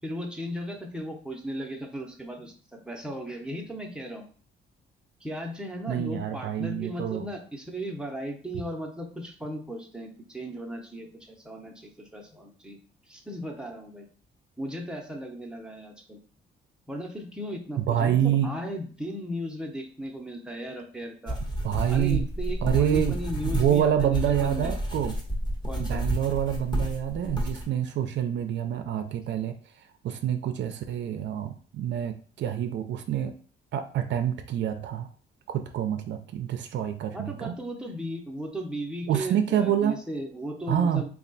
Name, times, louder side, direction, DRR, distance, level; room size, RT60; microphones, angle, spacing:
voice 1, 0.0-4.2 5.2-12.8 13.1-14.1 14.6-16.2 16.9-21.4 21.9-24.7 25.7-26.0 37.1-41.1, equal, 5° right, 1 dB, 0.8 m, -36 dB
voice 2, 5.9-7.3 17.8-18.5 21.6-22.3 22.6-23.2 23.4-25.2 25.8-29.6 30.0-33.3 33.7-35.1 35.5-37.6 39.1-40.0 40.7-41.0, right 10 dB, 65° right, 7 dB, 0.5 m, -27 dB
sound 1, 21.3-27.6, equal, 20° left, 1.1 m, -30 dB
3.3 x 2.4 x 3.9 m, 0.42 s
cardioid pair, 90°, 20 cm